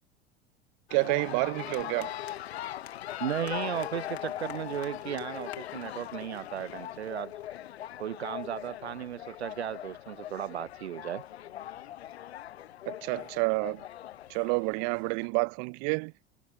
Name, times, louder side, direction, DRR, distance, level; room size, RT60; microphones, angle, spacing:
sound 1, 0.9-15.3, left 12 dB, 70° left, 5.5 m, -40 dB
voice 1, 0.9-2.1 12.9-13.8 14.3-16.1, right 40 dB or more, 55° right, 2.5 m, -29 dB
voice 2, 3.2-7.3 8.0-11.2, right 10 dB, 75° right, 1.4 m, -35 dB
figure-of-eight pair, 70°, 34 cm